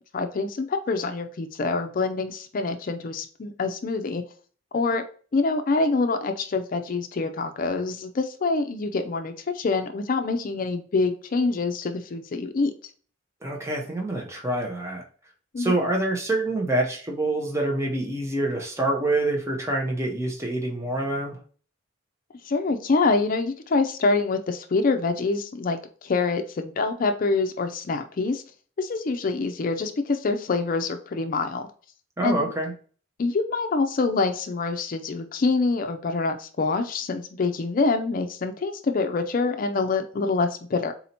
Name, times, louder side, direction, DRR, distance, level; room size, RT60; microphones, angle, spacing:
voice 1, 0.1-4.2 4.7-5.0 5.3-12.7 15.5-15.8 22.5-28.4 28.8-31.7 32.2-32.5 33.2-40.9, left 3 dB, 45° left, 7 dB, 0.4 m, -25 dB
voice 2, 13.4-15.0 15.6-21.4 32.2-32.7, right 2 dB, 15° right, 0 dB, 0.8 m, -26 dB
4.1 x 2.7 x 4.2 m, 0.42 s
head